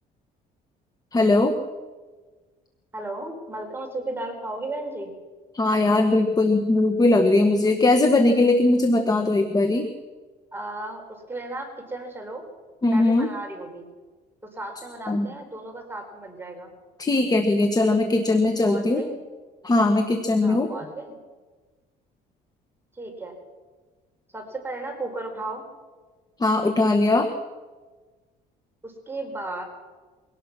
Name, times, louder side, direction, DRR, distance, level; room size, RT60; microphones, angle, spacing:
voice 1, 1.1-1.6 5.5-9.9 12.8-13.3 15.1-15.3 17.0-19.0 19.6-20.7 26.4-27.3, left 2 dB, 25° left, 7 dB, 1.6 m, -20 dB
voice 2, 2.9-5.2 10.5-12.4 12.9-13.9 14.5-16.7 18.6-19.2 20.4-21.1 23.0-23.3 24.3-25.7 28.8-29.6, right 2 dB, 15° right, 2 dB, 4.6 m, -35 dB
23.5 x 18.0 x 6.1 m, 1.3 s
cardioid pair, 110°, 17 cm